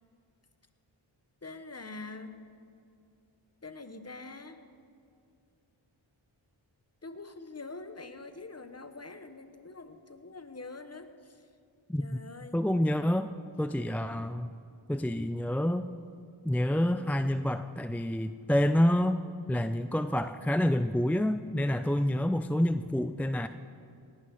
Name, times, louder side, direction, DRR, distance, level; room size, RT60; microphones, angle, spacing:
voice 1, 1.4-2.4 3.6-4.6 7.0-11.5 12.0-12.6, left 3 dB, 30° left, 9 dB, 1.2 m, -45 dB
voice 2, 12.5-13.3 13.6-14.5 14.9-15.9 16.4-19.2 19.5-23.5, left 1 dB, 5° left, 10 dB, 0.4 m, -28 dB
18.5 x 11.5 x 4.9 m, 2.4 s
cardioid pair, 40°, 48 cm